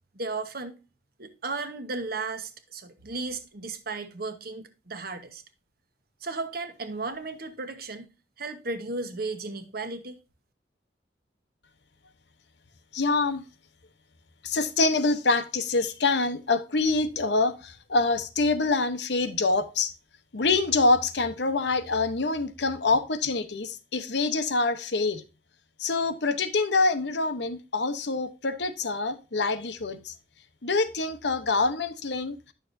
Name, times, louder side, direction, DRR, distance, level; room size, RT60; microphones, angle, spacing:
voice 1, 0.1-0.7 1.2-5.4 6.2-8.1 8.4-10.2, right 3 dB, 55° right, 1.2 m, -35 dB
voice 2, 12.9-13.4 14.4-19.9 20.3-25.2 25.8-30.1 30.6-32.4, left 3 dB, 70° left, 0.9 m, -25 dB
10.0 x 6.5 x 2.6 m
head